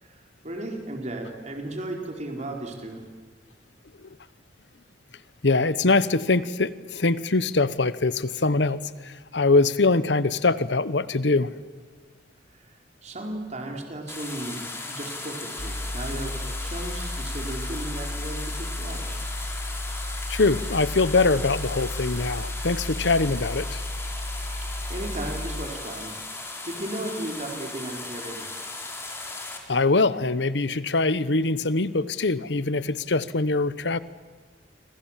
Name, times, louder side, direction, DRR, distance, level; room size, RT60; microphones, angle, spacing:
voice 1, 0.0-3.0 12.5-12.7 13.0-19.1 24.6-26.1 26.4-28.6, right 1 dB, 40° right, 2 dB, 4.3 m, -35 dB
voice 2, 5.4-11.7 20.3-23.8 29.7-34.0, left 3 dB, 80° left, 16 dB, 1.0 m, -23 dB
sound 1, 14.1-29.6, left 2 dB, 15° left, 4.2 m, -37 dB
sound 2, 15.6-25.7, left 1 dB, 40° left, 1.6 m, -33 dB
27.5 x 25.5 x 7.4 m, 1.4 s
head